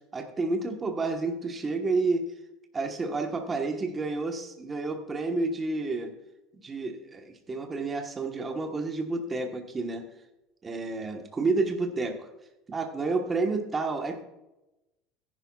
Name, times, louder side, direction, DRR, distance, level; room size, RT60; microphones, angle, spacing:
voice 1, 0.1-2.3 2.7-6.1 6.5-10.1 10.6-12.3 12.7-14.2, right 3 dB, 20° right, 4 dB, 1.3 m, -30 dB
14.5 x 11.0 x 2.4 m, 0.96 s
cardioid pair, 155°, 0 cm